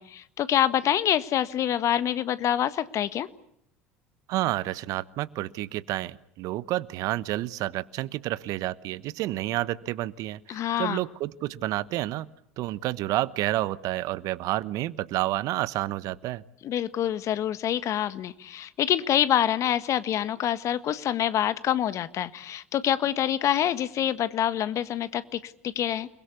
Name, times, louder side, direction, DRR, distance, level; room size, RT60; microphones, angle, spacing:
voice 1, 0.0-3.3 10.5-11.0 16.6-26.1, left 11 dB, 50° left, 14 dB, 1.6 m, -26 dB
voice 2, 4.3-12.3 12.6-16.4, right 16 dB, 55° right, 18 dB, 1.1 m, -30 dB
29.5 x 21.5 x 8.4 m, 0.72 s
hypercardioid pair, 70°, 7 cm